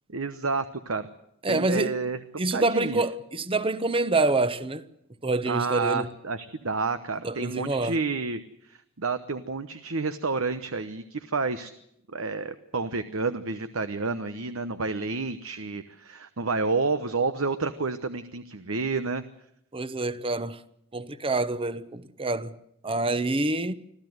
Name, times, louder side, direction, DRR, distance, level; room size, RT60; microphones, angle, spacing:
voice 1, 0.1-1.1 1.5-2.2 2.5-3.0 5.5-11.7 12.1-19.2, right 4 dB, 75° right, 1.1 m, -30 dB
voice 2, 1.4-1.9 2.4-4.9 5.2-6.1 7.2-8.0 19.7-20.6 20.9-22.5 22.8-23.7, right 2 dB, 25° right, 1.0 m, -26 dB
26.0 x 15.5 x 8.0 m
head